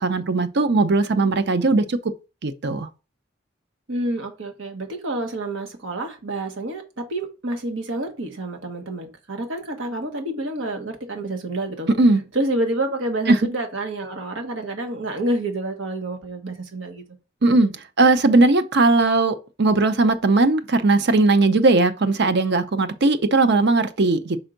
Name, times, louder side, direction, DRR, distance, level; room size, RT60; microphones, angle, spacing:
voice 1, 0.0-2.1 2.4-2.9 12.0-12.2 13.3-13.4 17.4-24.4, right 3 dB, 60° right, 0.7 m, -18 dB
voice 2, 3.9-11.9 12.3-17.0, right 1 dB, 85° right, 1.4 m, -28 dB
5.7 x 4.5 x 3.9 m
head